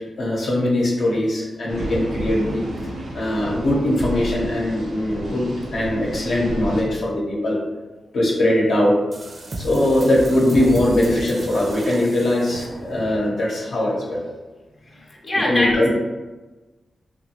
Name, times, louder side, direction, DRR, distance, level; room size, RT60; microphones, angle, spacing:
voice 1, 0.2-2.7 3.1-7.6 8.1-9.0 9.6-14.2 15.5-16.0, left 1 dB, 80° left, -3 dB, 0.7 m, -21 dB
sound 1, 1.7-6.8, right 1 dB, 85° right, 0.8 m, -31 dB
sound 2, 9.1-13.3, right 1 dB, 55° right, 0.4 m, -33 dB
voice 2, 14.9-16.0, left 1 dB, 35° left, -2 dB, 0.6 m, -24 dB
2.9 x 2.2 x 2.8 m, 1.2 s
cardioid pair, 70°, 0 cm